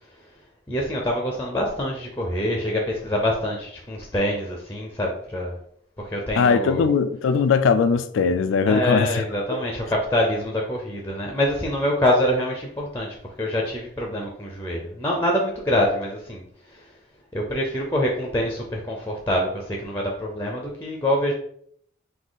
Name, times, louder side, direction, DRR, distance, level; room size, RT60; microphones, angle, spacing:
voice 1, 0.7-5.6 6.0-6.9 8.7-16.9 17.3-21.3, left 1 dB, 10° left, 0.5 m, -25 dB
voice 2, 6.4-9.2, left 5 dB, 90° left, 0.3 m, -20 dB
3.9 x 2.7 x 3.9 m
head